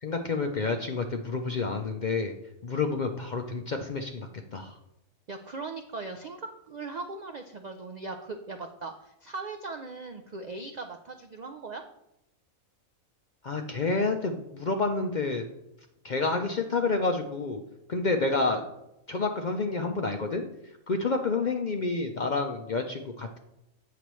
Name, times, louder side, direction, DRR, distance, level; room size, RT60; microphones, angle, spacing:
voice 1, 0.0-2.3 2.6-4.7 13.4-15.5 16.0-17.6 17.9-18.6 19.1-20.5 20.9-23.4, left 3 dB, 55° left, 4 dB, 0.5 m, -29 dB
voice 2, 5.3-11.8, right 3 dB, 70° right, 5 dB, 0.4 m, -39 dB
8.3 x 6.9 x 3.1 m, 0.88 s
omnidirectional pair, 1.4 m